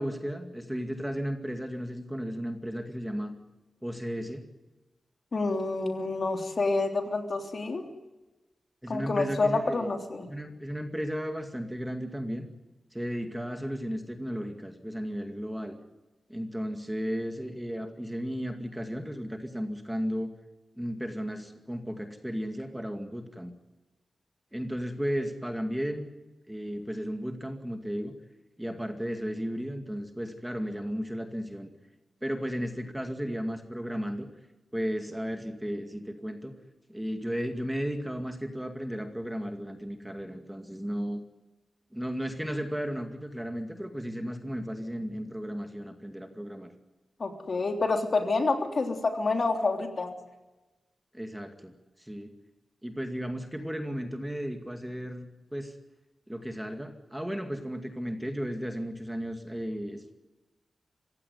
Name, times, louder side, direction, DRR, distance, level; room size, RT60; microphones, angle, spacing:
voice 1, 0.0-3.3 3.8-4.4 8.8-9.9 10.3-12.5 12.9-15.8 16.3-20.3 20.8-23.5 24.5-26.1 26.5-28.1 28.6-31.7 32.2-34.3 34.7-36.5 36.9-41.2 41.9-46.7 51.1-51.7 52.0-52.3 52.8-55.7 56.3-60.1, equal, 5° right, 5 dB, 2.2 m, -34 dB
voice 2, 5.3-7.9 8.9-10.3 47.2-50.1, left 3 dB, 50° left, 4 dB, 3.3 m, -28 dB
26.0 x 16.5 x 9.5 m, 1.1 s
wide cardioid pair, 140°, 0 cm